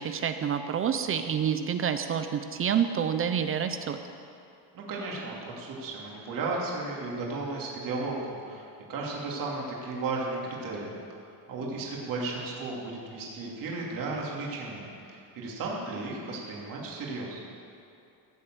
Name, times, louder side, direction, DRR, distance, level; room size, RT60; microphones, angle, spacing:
voice 1, 0.0-4.0, right 8 dB, 30° right, 8 dB, 0.5 m, -28 dB
voice 2, 4.7-8.6 8.9-11.0 11.5-17.4, right 3 dB, 45° right, -3 dB, 2.9 m, -34 dB
16.0 x 7.7 x 7.8 m, 2.6 s
cardioid pair, 160°, 45 cm